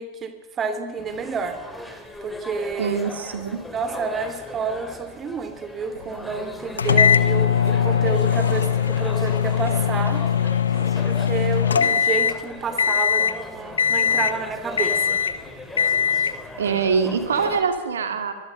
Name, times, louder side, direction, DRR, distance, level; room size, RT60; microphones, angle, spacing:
voice 1, 0.0-3.0 3.7-10.2 11.0-15.2, right 5 dB, 25° right, 9 dB, 2.7 m, -30 dB
sound 1, 1.0-17.6, left 1 dB, 5° left, 3.2 m, -38 dB
voice 2, 2.8-3.6 16.6-18.3, right 6 dB, 65° right, 7 dB, 2.7 m, -23 dB
sound 2, 6.8-12.4 12.8-13.4 13.8-14.4 14.8-15.4 15.8-16.4, left 7 dB, 70° left, 1.1 m, -20 dB
25.0 x 21.5 x 5.7 m, 1.3 s
figure-of-eight pair, 90°, 0 cm